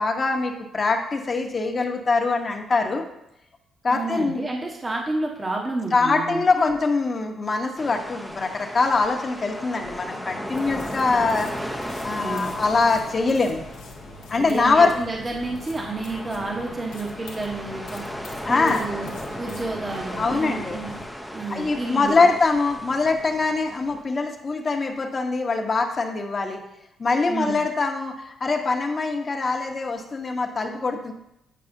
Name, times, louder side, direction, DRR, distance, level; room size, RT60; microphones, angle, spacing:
voice 1, 0.0-3.0 3.8-4.4 5.9-11.5 11.8-13.6 14.3-14.9 18.5-18.8 20.2-20.8 21.5-26.6 27.0-31.1, left 3 dB, 35° left, 3 dB, 0.9 m, -23 dB
voice 2, 3.9-6.7 12.2-12.5 14.4-18.0 18.5-19.1 19.4-20.9 21.3-22.3 27.3-27.6, right 2 dB, 25° right, 0 dB, 1.0 m, -30 dB
sound 1, 7.8-24.0, equal, ahead, 0.6 m, -36 dB
sound 2, 10.5-21.1, left 3 dB, 90° left, 0.9 m, -43 dB
8.4 x 4.7 x 2.6 m, 0.83 s
cardioid pair, 90°, 0 cm